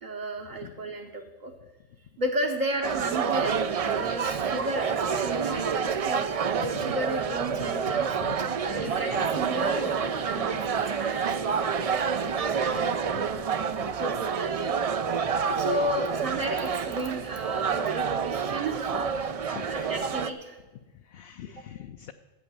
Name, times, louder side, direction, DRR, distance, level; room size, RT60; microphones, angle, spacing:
voice 1, 0.0-1.5 2.2-6.3 6.8-11.4 12.2-12.9 14.0-14.7 15.6-19.3 19.7-20.6, right 1 dB, 40° right, 1 dB, 0.9 m, -33 dB
sound 1, 2.8-20.3, right 6 dB, 60° right, 0.3 m, -28 dB
voice 2, 6.6-7.0 7.5-9.4 12.7-12.8 13.1-13.5 13.8-13.9 19.4-19.9 20.9-22.1, left 10 dB, 65° left, 7 dB, 0.7 m, -43 dB
sound 2, 7.5-8.2 8.8-11.1, left 1 dB, 10° left, 0.6 m, -44 dB
12.0 x 8.1 x 6.9 m, 1.2 s
omnidirectional pair, 1.2 m